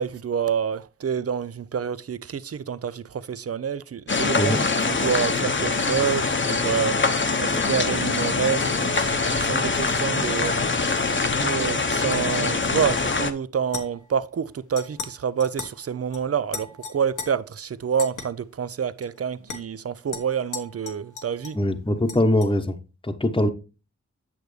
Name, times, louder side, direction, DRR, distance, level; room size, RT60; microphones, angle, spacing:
voice 1, 0.0-10.6 10.9-11.0 11.4-21.6, right 7 dB, 55° right, 0.6 m, -28 dB
sound 1, 4.1-13.3, left 4 dB, 40° left, 0.9 m, -24 dB
sound 2, 13.7-14.2 14.8-15.1 15.4-15.8 16.1-16.2 16.5-17.3 18.0-18.3 19.0-19.1 19.5-19.6 20.1-21.6 22.1-22.5, left 5 dB, 90° left, 1.3 m, -36 dB
voice 2, 21.5-22.8 23.0-23.5, left 1 dB, 15° left, 1.0 m, -22 dB
8.8 x 6.5 x 3.2 m
cardioid pair, 45°, 29 cm